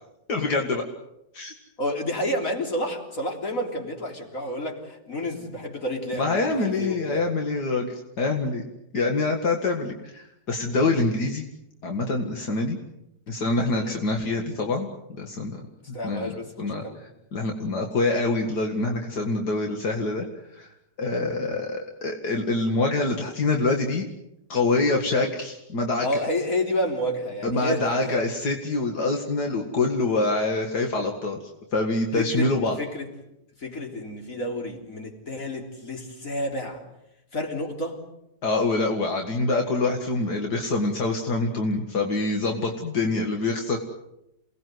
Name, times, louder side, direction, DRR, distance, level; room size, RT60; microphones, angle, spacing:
voice 1, 0.3-0.8 1.3-1.5 6.1-8.6 8.9-11.4 11.8-12.8 13.3-14.9 15.2-15.6 16.0-16.3 16.6-16.8 17.3-20.3 20.5-20.7 21.0-24.1 24.5-26.1 27.4-31.4 31.7-32.8 38.4-43.8, left 3 dB, 80° left, 2 dB, 2.5 m, -25 dB
voice 2, 1.8-7.3 13.7-14.0 15.9-17.0 21.1-21.3 26.0-28.2 32.1-32.5 32.8-33.1 33.6-36.8 37.3-38.0, left 1 dB, 55° left, 2 dB, 4.0 m, -30 dB
28.5 x 19.0 x 7.9 m, 0.85 s
omnidirectional pair, 1.7 m